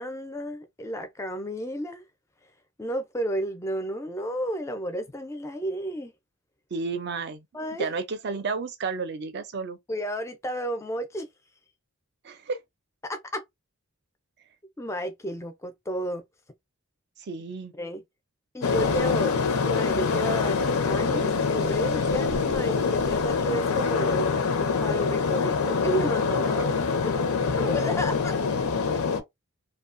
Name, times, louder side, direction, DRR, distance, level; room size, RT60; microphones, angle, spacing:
voice 1, 0.0-2.0 2.8-6.1 7.5-7.9 9.9-11.3 13.0-13.4 14.8-16.2 17.7-18.0 18.5-19.3 19.6-20.6 20.9-24.3 24.8-26.7 27.0-27.2 27.6-28.4, equal, 15° left, 0.4 m, -32 dB
voice 2, 6.7-7.4 7.8-9.8 12.2-12.6 17.2-17.7 26.3-26.6, right 4 dB, 50° right, 0.4 m, -32 dB
sound 1, 18.6-29.2, left 5 dB, 75° left, 0.5 m, -25 dB
2.6 x 2.1 x 2.5 m
head